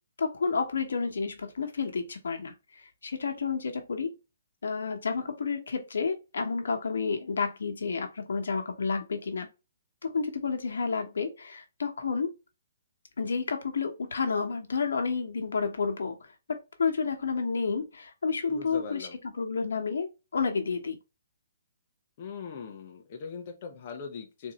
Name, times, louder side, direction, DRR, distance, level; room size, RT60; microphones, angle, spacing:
voice 1, 0.2-2.5 3.0-4.1 4.6-9.5 10.0-12.3 13.2-16.2 16.5-19.1 19.4-21.0, left 5 dB, 85° left, 1.0 m, -30 dB
voice 2, 18.5-19.2 22.2-24.5, left 5 dB, 30° left, 0.6 m, -40 dB
3.8 x 2.6 x 2.9 m
hypercardioid pair, 170°, 0 cm